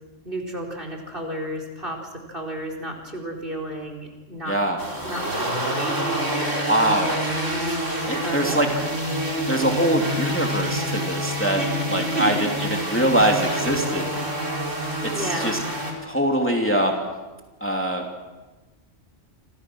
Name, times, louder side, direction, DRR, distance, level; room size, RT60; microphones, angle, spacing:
voice 1, 0.2-4.6 5.0-7.7 8.2-8.9 11.5-12.5 14.1-14.5 15.1-15.6, right 1 dB, 45° right, 3 dB, 4.6 m, -32 dB
voice 2, 4.5-4.8 6.7-7.2 8.1-8.7 9.5-11.6 11.9-12.3 12.9-14.2 15.2-15.6 16.0-17.0 17.6-18.2, right 1 dB, 10° left, 1 dB, 2.9 m, -23 dB
sound 1, 4.8-15.9, equal, 75° right, 5.3 m, -27 dB
29.5 x 27.0 x 6.3 m, 1.2 s
omnidirectional pair, 1.3 m